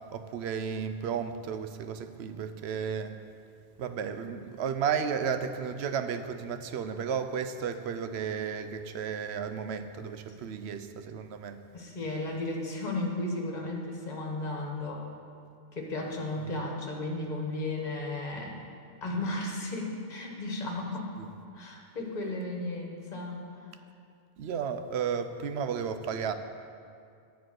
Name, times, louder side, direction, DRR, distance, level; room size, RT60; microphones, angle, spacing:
voice 1, 0.1-3.2 3.8-11.6 16.4-16.5 21.2-21.3 24.4-26.3, right 7 dB, 80° right, 9 dB, 0.8 m, -33 dB
voice 2, 11.7-15.0 15.7-18.6 19.0-21.2 21.5-23.4, left 2 dB, 45° left, 0 dB, 1.4 m, -34 dB
10.0 x 4.6 x 7.6 m, 2.4 s
omnidirectional pair, 1.1 m